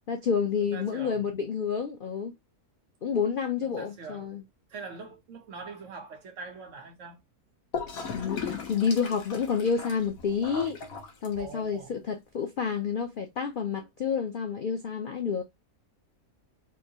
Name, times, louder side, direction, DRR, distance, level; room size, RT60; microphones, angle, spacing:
voice 1, 0.1-2.3 3.0-4.4 8.1-10.8 11.2-15.4, left 6 dB, 90° left, 0.4 m, -29 dB
voice 2, 0.6-1.4 3.6-4.3 4.7-7.2 11.4-12.1, right 4 dB, 60° right, 1.0 m, -43 dB
Gurgling / Toilet flush, 7.7-11.7, left 5 dB, 65° left, 1.3 m, -37 dB
3.7 x 2.6 x 2.8 m
omnidirectional pair, 1.6 m